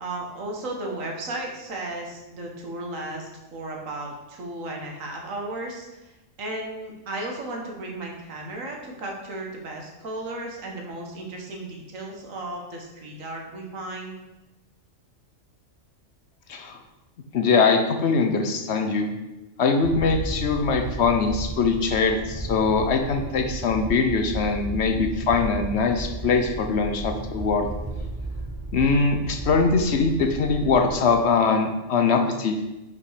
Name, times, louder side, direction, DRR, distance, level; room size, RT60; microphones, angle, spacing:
voice 1, 0.0-6.1 6.4-14.1, right 2 dB, 85° right, 0 dB, 1.6 m, -35 dB
voice 2, 17.3-19.1 19.6-27.7 28.7-32.6, left 4 dB, 60° left, 5 dB, 0.9 m, -22 dB
sound 1, 19.8-31.3, right 2 dB, 20° right, 0.8 m, -34 dB
5.4 x 5.2 x 4.9 m, 1.0 s
omnidirectional pair, 1.3 m